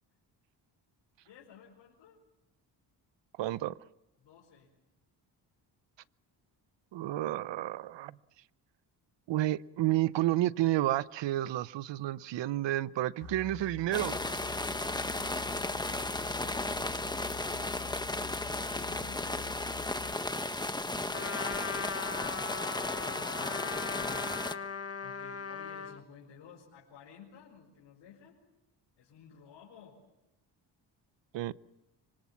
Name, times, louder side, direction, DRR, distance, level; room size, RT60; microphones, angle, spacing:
voice 1, 1.3-2.2 4.2-4.7 15.1-15.6 17.4-17.7 18.6-19.6 20.7-24.3 25.0-28.4 29.0-30.0, left 7 dB, 85° left, -2 dB, 4.8 m, -55 dB
voice 2, 3.4-3.8 6.9-8.2 9.3-14.2 31.3-31.5, right 15 dB, 80° right, 18 dB, 0.8 m, -30 dB
sound 1, 13.2-20.1, left 8 dB, 50° left, 1.4 m, -47 dB
sound 2, 13.9-24.5, left 2 dB, 10° left, 1.3 m, -35 dB
Trumpet, 21.1-26.0, left 5 dB, 35° left, 1.6 m, -38 dB
25.5 x 25.0 x 7.2 m, 0.96 s
cardioid pair, 90°, 43 cm